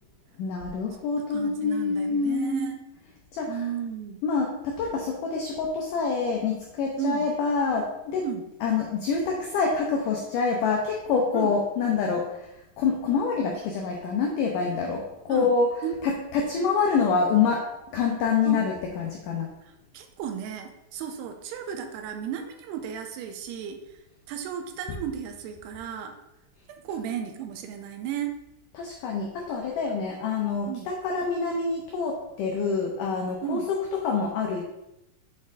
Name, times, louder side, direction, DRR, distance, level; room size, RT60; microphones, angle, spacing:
voice 1, 0.4-2.7 3.3-3.6 4.2-8.2 8.6-12.4 12.8-15.7 16.0-17.7 17.9-19.5 28.8-34.6, left 5 dB, 85° left, 0 dB, 1.8 m, -26 dB
voice 2, 1.3-2.8 3.5-4.2 7.0-7.3 8.2-8.5 11.3-11.6 15.3-15.5 15.8-16.0 18.5-18.7 19.6-23.8 24.3-26.1 26.8-28.3 30.7-30.9 33.4-33.7, right 9 dB, 85° right, 6 dB, 2.7 m, -34 dB
7.3 x 4.4 x 3.6 m, 0.89 s
omnidirectional pair, 4.7 m